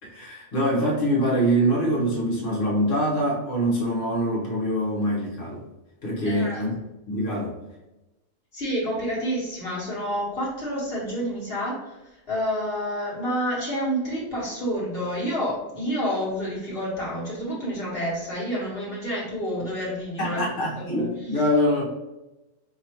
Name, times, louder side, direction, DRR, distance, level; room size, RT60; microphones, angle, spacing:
voice 1, 0.0-5.6 6.0-6.8 7.1-7.5 20.2-21.8, equal, 65° left, -4 dB, 1.4 m, -24 dB
voice 2, 6.2-6.6 7.3-7.5 8.5-12.0 12.3-21.1, equal, 45° left, -6 dB, 1.6 m, -29 dB
4.8 x 3.0 x 2.9 m, 1.0 s
omnidirectional pair, 1.4 m